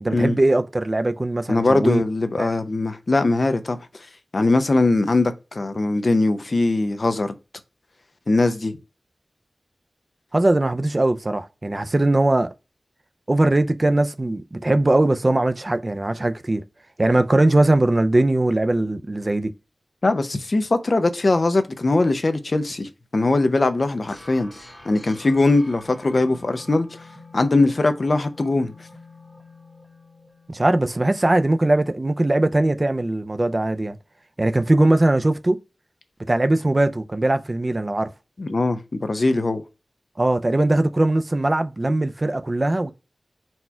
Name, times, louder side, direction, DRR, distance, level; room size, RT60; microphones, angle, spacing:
voice 1, 0.0-2.0 2.4-2.5 10.3-12.5 13.3-16.6 17.0-19.5 30.5-34.0 34.4-35.6 36.3-38.1 40.2-42.9, right 2 dB, 35° right, 0.4 m, -20 dB
voice 2, 1.5-3.8 4.3-7.3 8.3-8.8 20.0-24.5 24.9-26.9 27.3-28.7 38.4-39.6, left 2 dB, 55° left, 0.5 m, -21 dB
sound 1, 24.1-31.0, left 2 dB, 15° left, 1.0 m, -46 dB
4.2 x 2.3 x 4.3 m
wide cardioid pair, 85°, 0 cm